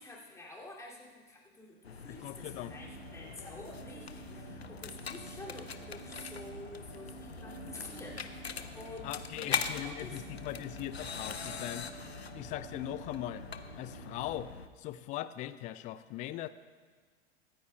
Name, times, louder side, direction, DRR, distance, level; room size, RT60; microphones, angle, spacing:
voice 1, 0.0-10.4, left 2 dB, 10° left, -4 dB, 2.5 m, -49 dB
sound 1, 1.8-14.7, left 6 dB, 85° left, 0.6 m, -42 dB
voice 2, 2.1-2.8 9.0-11.9 12.3-13.5 13.8-14.5 14.8-16.5, left 14 dB, 25° left, 14 dB, 0.4 m, -40 dB
sound 2, 2.4-14.5, right 11 dB, 55° right, 1.4 m, -51 dB
24.0 x 9.3 x 2.3 m, 1.5 s
figure-of-eight pair, 85°, 31 cm